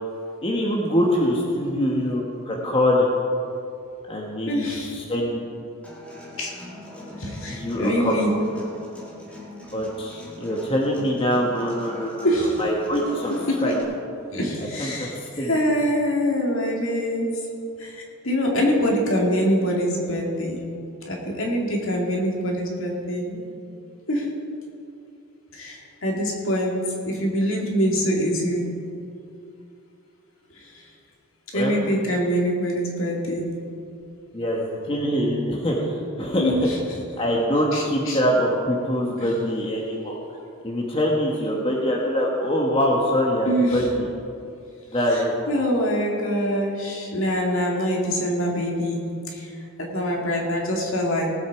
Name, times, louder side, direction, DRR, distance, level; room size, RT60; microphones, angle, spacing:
voice 1, 0.4-3.1 4.1-5.4 7.5-8.1 9.7-13.7 14.8-15.6 31.5-31.8 34.3-36.7 37.2-40.2 40.6-44.1 44.9-45.3, equal, 25° left, -2 dB, 1.2 m, -24 dB
voice 2, 4.5-4.9 6.4-6.5 7.2-8.4 12.2-12.6 13.5-13.7 14.3-17.3 17.8-20.6 21.0-23.4 24.1-24.3 25.5-26.7 27.0-28.7 31.5-33.5 36.3-36.8 37.7-38.2 43.5-43.8 45.5-49.0 49.3-49.5 49.8-51.3, equal, 60° left, -1 dB, 2.2 m, -24 dB
Human voice / Acoustic guitar, 5.8-13.8, left 1 dB, 5° left, 2.0 m, -42 dB
18.0 x 8.1 x 4.7 m, 2.6 s
head